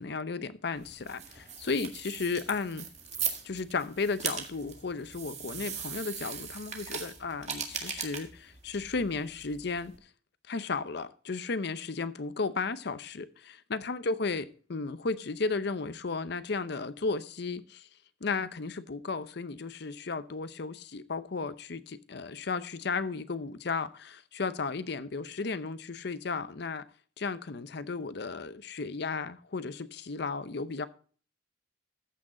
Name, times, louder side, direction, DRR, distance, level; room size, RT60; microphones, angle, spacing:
voice 1, 0.0-2.9 3.4-9.9 10.5-17.9 18.2-26.9 27.2-30.9, left 4 dB, 65° left, 0.7 m, -34 dB
sound 1, 0.8-10.0, right 7 dB, 40° right, 1.8 m, -39 dB
14.0 x 6.3 x 3.8 m
head